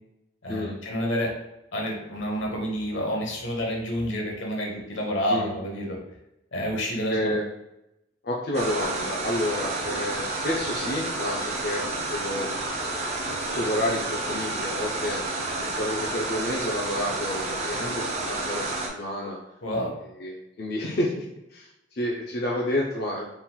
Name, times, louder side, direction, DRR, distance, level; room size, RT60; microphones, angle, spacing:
voice 1, 0.4-1.3 1.7-6.0 6.5-7.4 19.6-19.9, equal, 80° left, 0 dB, 1.1 m, -29 dB
voice 2, 7.1-7.4 8.2-11.8 12.1-12.5 13.5-15.2 15.6-19.4 20.2-21.2 21.5-23.3, left 1 dB, 50° left, -3 dB, 0.5 m, -29 dB
sound 1, 8.5-18.9, right 2 dB, 35° right, 0.6 m, -30 dB
4.2 x 3.9 x 2.3 m, 0.89 s
head